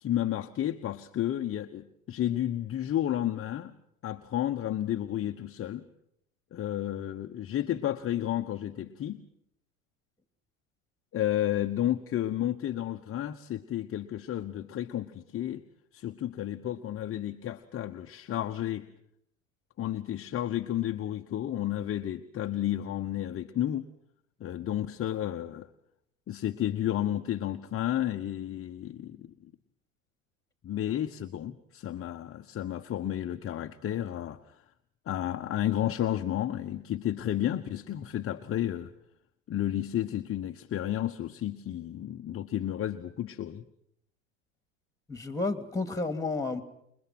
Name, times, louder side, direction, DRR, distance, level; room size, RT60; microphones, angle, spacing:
voice 1, 0.0-3.7 4.0-5.8 6.5-9.2 11.1-15.6 15.9-18.9 19.8-23.9 24.4-25.7 26.3-29.5 30.6-34.6 35.1-38.9 39.5-43.6, left 12 dB, 35° left, 5 dB, 1.1 m, -32 dB
voice 2, 45.1-46.6, left 3 dB, 10° left, 8 dB, 2.8 m, -31 dB
28.0 x 22.0 x 6.1 m, 0.76 s
hypercardioid pair, 85°, 40 cm